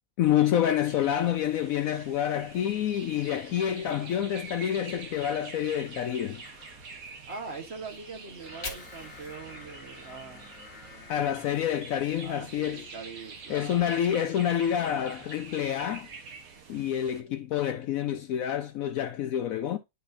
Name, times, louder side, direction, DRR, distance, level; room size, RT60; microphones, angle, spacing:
voice 1, 0.2-6.4 11.1-12.8 13.5-16.1 16.7-19.8, left 10 dB, 70° left, 0.9 m, -28 dB
sound 1, 0.8-17.2, right 4 dB, 60° right, 1.5 m, -46 dB
sound 2, 6.4-11.8, left 5 dB, 55° left, 1.6 m, -51 dB
voice 2, 7.3-11.0 12.2-14.0, right 4 dB, 40° right, 1.4 m, -43 dB
Fire, 8.3-11.4 11.8-13.8, left 3 dB, 30° left, 1.3 m, -48 dB
10.0 x 4.1 x 2.6 m
omnidirectional pair, 1.8 m